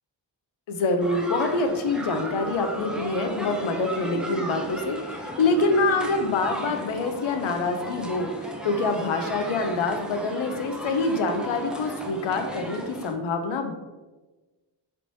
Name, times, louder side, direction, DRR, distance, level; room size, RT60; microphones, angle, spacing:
voice 1, 0.7-13.8, left 3 dB, 85° left, 5 dB, 0.6 m, -26 dB
sound 1, 1.0-13.1, equal, ahead, 0.4 m, -36 dB
3.3 x 3.0 x 2.6 m, 1.2 s
cardioid pair, 50°, 47 cm